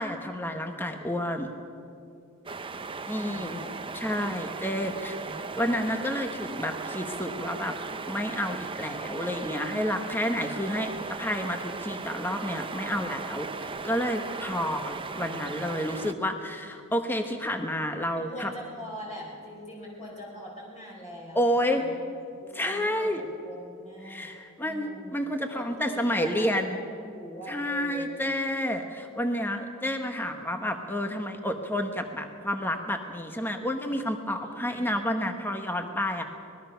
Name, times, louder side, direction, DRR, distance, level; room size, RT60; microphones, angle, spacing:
voice 1, 0.0-1.5 3.1-3.6 3.9-7.7 8.1-18.5 21.3-21.8 22.5-23.2 24.0-26.8 27.5-36.2, equal, 10° left, 5 dB, 1.1 m, -30 dB
sound 1, 2.5-16.1, right 4 dB, 25° right, 0.7 m, -37 dB
voice 2, 3.1-3.8 4.8-5.5 10.6-11.2 18.1-22.0 22.3-24.3 24.6-25.3 25.5-28.2 34.4-35.0, equal, 30° left, -3 dB, 4.1 m, -43 dB
24.5 x 20.0 x 5.7 m, 2.5 s
head